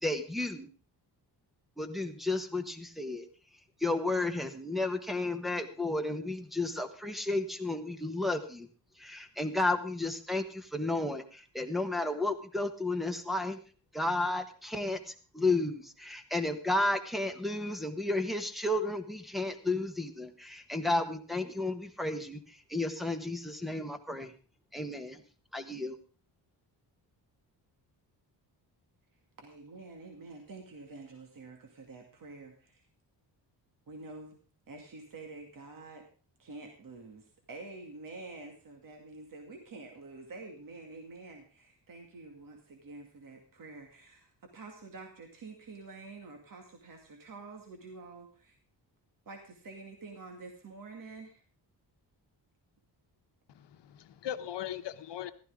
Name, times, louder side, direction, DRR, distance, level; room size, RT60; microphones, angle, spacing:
voice 1, 0.0-0.7 1.8-3.3 3.8-8.7 9.0-13.6 13.9-24.3 24.7-25.2 25.5-26.0, left 2 dB, ahead, 4 dB, 1.2 m, -32 dB
voice 2, 29.4-32.9 33.9-34.4 34.7-36.0 36.4-48.6 49.3-51.4, right 3 dB, 50° right, 3 dB, 2.3 m, -48 dB
voice 3, 53.5-55.3, left 11 dB, 80° left, 11 dB, 1.0 m, -39 dB
15.0 x 13.0 x 3.7 m, 0.37 s
wide cardioid pair, 150°, 41 cm